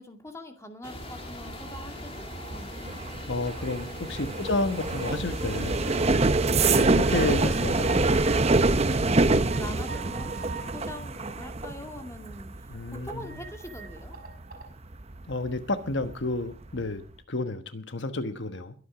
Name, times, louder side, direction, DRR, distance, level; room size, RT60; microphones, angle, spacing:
voice 1, 0.0-3.2 4.2-4.6 9.0-14.2, left 1 dB, 15° left, 5 dB, 2.2 m, -44 dB
sound 1, 0.8-6.1, left 2 dB, 30° left, 2.5 m, -42 dB
sound 2, 0.9-15.6 15.9-16.3 16.6-17.0, right 3 dB, 35° right, 0.8 m, -26 dB
sound 3, 1.4-2.5 3.2-3.3 5.1-5.2 5.4-5.5 5.8-9.6 9.9-11.7 13.2-14.7, right 5 dB, 50° right, 5.7 m, -45 dB
voice 2, 3.3-5.9 6.8-8.0 12.7-13.3 15.3-17.0 17.3-18.7, left 2 dB, 70° left, 9 dB, 1.2 m, -31 dB
22.0 x 8.7 x 5.0 m, 0.38 s
head